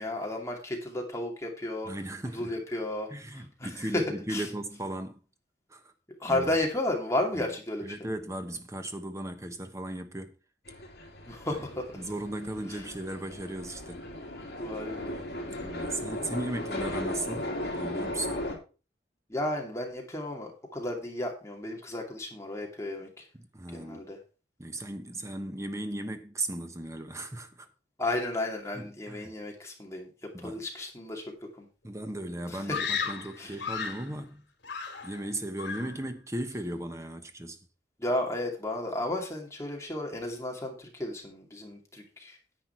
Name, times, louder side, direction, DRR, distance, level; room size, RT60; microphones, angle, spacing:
voice 1, 0.0-1.9 2.3-3.1 3.6-4.0 4.3-4.4 6.2-7.9 11.3-11.9 12.7-12.8 14.6-15.2 19.3-23.2 23.7-24.2 28.0-30.1 30.4-31.2 31.6-31.7 32.5-32.8 33.4-33.6 38.0-42.4, left 1 dB, 15° left, 2.5 m, -33 dB
voice 2, 1.8-2.6 3.1-5.2 5.7-5.9 6.3-6.6 7.3-7.5 7.8-10.4 11.5-11.6 11.9-14.0 15.5-18.4 23.3-24.0 24.6-27.7 28.7-29.3 30.3-30.7 31.8-34.4 35.0-37.6, right 1 dB, 15° right, 1.1 m, -37 dB
sound 1, 10.7-18.5, left 1 dB, 60° left, 3.2 m, -37 dB
Screaming, 32.7-34.1 34.6-35.3 35.6-36.0, left 6 dB, 75° left, 2.5 m, -34 dB
10.0 x 8.1 x 4.5 m
head